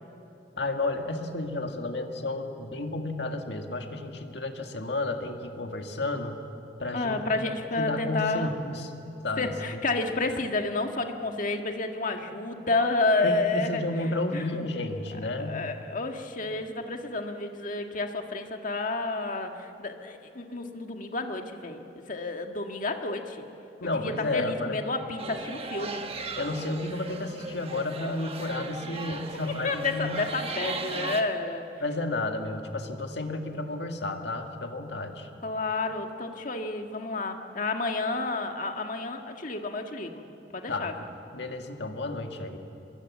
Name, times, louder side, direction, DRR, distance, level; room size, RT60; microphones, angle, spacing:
voice 1, 0.6-6.4 6.8-7.5 7.8-8.9 9.2-9.8 13.2-15.7 23.8-24.8 26.3-30.3 31.8-35.3 40.7-40.9 41.3-42.6, left 2 dB, 70° left, 4 dB, 2.0 m, -32 dB
voice 2, 6.9-8.5 9.4-13.8 14.3-14.4 15.4-21.8 22.1-23.4 23.8-26.0 29.6-31.6 35.4-40.2 40.5-40.9, left 3 dB, 50° left, 4 dB, 1.7 m, -30 dB
sound 1, 25.2-31.2, right 3 dB, 35° right, 1.3 m, -37 dB
25.0 x 22.5 x 7.4 m, 3.0 s
head